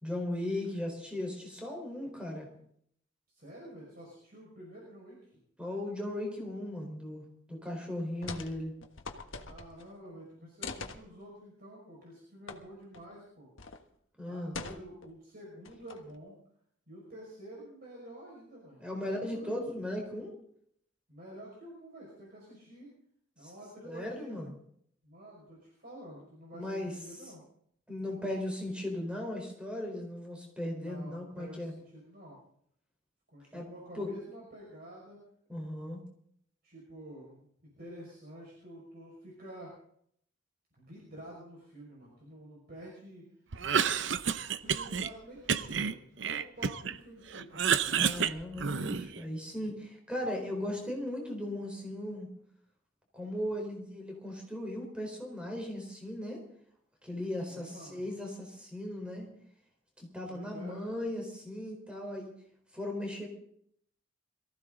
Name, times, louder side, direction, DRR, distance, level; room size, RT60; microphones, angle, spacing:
voice 1, 0.0-2.5 5.6-8.7 14.2-14.6 18.8-20.3 23.4-23.5 23.8-24.5 26.5-26.9 27.9-31.7 33.5-33.7 33.9-34.1 35.5-36.0 47.9-52.3 53.1-56.4 57.0-59.3 60.0-62.3 62.7-63.3, left 1 dB, 5° right, 1 dB, 4.2 m, -37 dB
voice 2, 3.3-5.4 9.4-13.5 14.2-16.4 16.9-19.6 21.1-22.9 23.4-24.3 25.0-27.4 30.7-32.4 33.3-35.2 36.6-39.7 40.8-43.2 43.7-47.6 57.5-58.1 60.3-60.9, right 1 dB, 50° right, -3 dB, 5.6 m, -49 dB
sound 1, 8.2-8.6 8.8-9.9 10.6-11.0 12.5-12.6 12.9-13.0 13.6-13.8 14.5-15.1 15.6-16.2, left 4 dB, 80° left, 1.4 m, -42 dB
Cough, 43.5-45.1 45.5-47.0 47.3-49.2, right 7 dB, 65° right, 0.7 m, -30 dB
22.5 x 15.0 x 3.9 m, 0.66 s
head